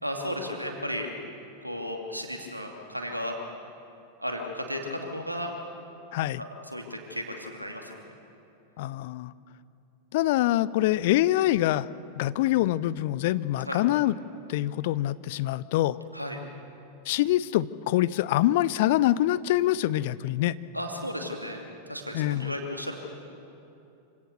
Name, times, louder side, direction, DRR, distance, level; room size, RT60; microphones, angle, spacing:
voice 1, 0.0-1.1 1.6-3.4 4.2-5.5 6.4-7.9 13.6-13.8 16.1-16.4 20.7-22.9, equal, 90° right, 2 dB, 2.6 m, -34 dB
voice 2, 6.1-6.4 8.8-9.3 10.1-11.9 12.2-14.2 14.5-16.0 17.1-20.5 22.1-22.5, left 15 dB, 50° left, 18 dB, 0.5 m, -25 dB
26.5 x 17.0 x 6.8 m, 2.7 s
figure-of-eight pair, 90°, 0 cm